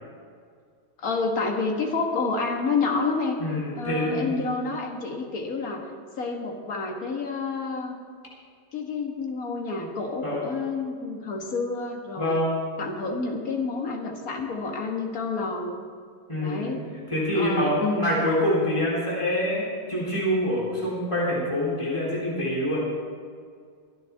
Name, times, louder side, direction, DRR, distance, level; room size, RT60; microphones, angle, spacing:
voice 1, 1.0-3.4 3.8-5.9 6.2-8.0 8.7-12.4 12.8-15.9 16.4-16.9 17.4-18.1, left 4 dB, 60° left, 1 dB, 2.0 m, -29 dB
voice 2, 3.4-4.4 10.2-10.5 12.2-12.5 16.3-16.7 17.1-22.9, equal, 15° left, -6 dB, 3.7 m, -26 dB
24.0 x 10.0 x 3.6 m, 2.1 s
omnidirectional pair, 1.7 m